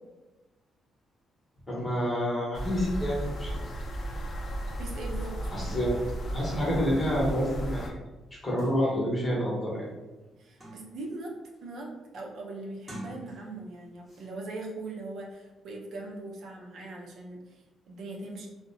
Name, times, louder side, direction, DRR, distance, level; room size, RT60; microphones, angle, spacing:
voice 1, 1.7-3.5 5.5-6.0 6.3-7.9 8.4-9.8, equal, 20° left, -5 dB, 0.9 m, -28 dB
sound 1, 2.5-7.9, right 1 dB, 40° left, 0.4 m, -35 dB
voice 2, 4.8-5.8 10.4-11.3 11.6-18.5, right 2 dB, 65° right, -1 dB, 0.5 m, -40 dB
sound 2, 8.3-8.4 8.6-8.8 9.3-9.4 9.8-11.1 11.5-11.9 12.7-13.7 14.0-14.3, equal, 10° right, 0.8 m, -47 dB
2.5 x 2.0 x 2.6 m, 1.1 s
cardioid pair, 115°, 0 cm